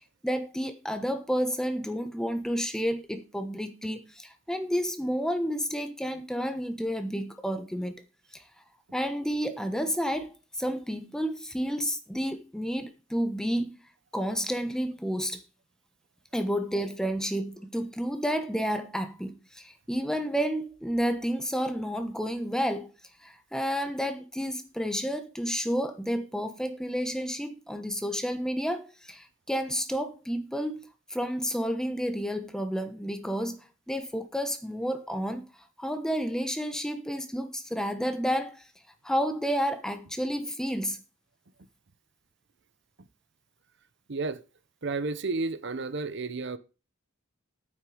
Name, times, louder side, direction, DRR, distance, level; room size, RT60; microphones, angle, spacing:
voice 1, 0.2-7.9 8.3-8.4 8.9-13.7 14.1-15.4 16.3-22.9 23.2-30.8 31.1-33.6 33.9-35.4 35.8-38.6 39.0-41.0, equal, 5° left, 1.1 m, -30 dB
voice 2, 44.1-44.4 44.8-46.6, right 3 dB, 60° right, 0.8 m, -31 dB
9.7 x 8.9 x 5.0 m
head